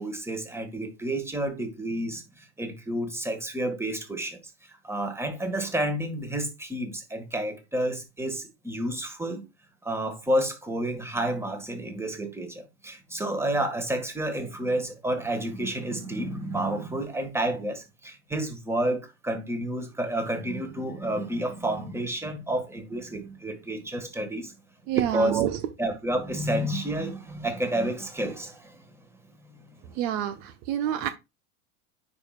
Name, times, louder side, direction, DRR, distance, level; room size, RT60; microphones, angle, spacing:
voice 1, 0.0-9.4 9.8-24.5 24.9-25.4 25.8-28.8 29.4-30.2 30.9-31.1, right 1 dB, 5° right, 1.6 m, -30 dB
voice 2, 24.9-25.5 30.0-31.1, right 11 dB, 60° right, 0.9 m, -27 dB
9.8 x 4.9 x 2.4 m
hypercardioid pair, 105°, 44 cm